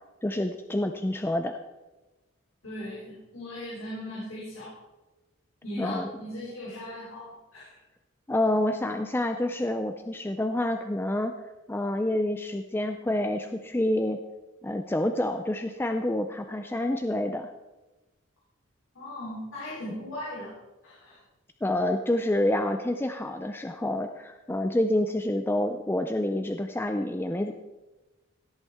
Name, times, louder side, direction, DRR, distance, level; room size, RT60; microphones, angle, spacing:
voice 1, 0.2-1.5 5.8-6.1 8.3-11.3 11.7-14.2 14.6-17.5 21.6-27.5, left 1 dB, 10° left, 7 dB, 0.4 m, -28 dB
voice 2, 2.6-4.8 5.6-7.8 18.9-20.5 20.8-21.2, left 1 dB, 90° left, -7 dB, 3.6 m, -38 dB
17.0 x 8.4 x 3.5 m, 1.1 s
head